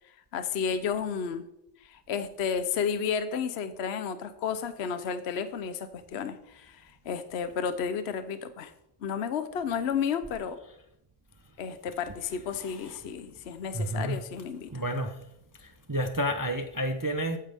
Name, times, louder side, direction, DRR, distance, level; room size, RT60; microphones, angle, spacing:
voice 1, 0.3-1.4 1.8-8.7 9.0-10.6 11.6-14.7, left 7 dB, 55° left, 10 dB, 0.9 m, -32 dB
voice 2, 12.5-13.0 13.7-14.2 14.7-15.2 15.6-17.4, equal, 20° right, 6 dB, 0.6 m, -31 dB
14.0 x 9.4 x 3.5 m, 0.81 s
omnidirectional pair, 1.5 m